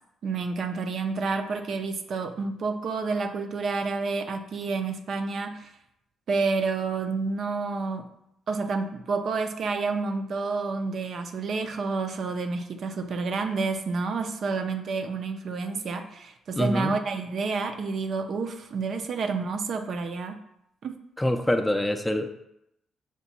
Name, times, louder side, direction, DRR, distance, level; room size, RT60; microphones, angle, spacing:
voice 1, 0.2-5.7 6.3-8.1 8.5-20.4 20.8-21.0, right 4 dB, 60° right, 6 dB, 0.4 m, -29 dB
voice 2, 16.6-17.0 21.2-22.3, left 1 dB, 10° left, 5 dB, 0.4 m, -25 dB
5.8 x 2.2 x 4.1 m, 0.80 s
cardioid pair, 90°, 0 cm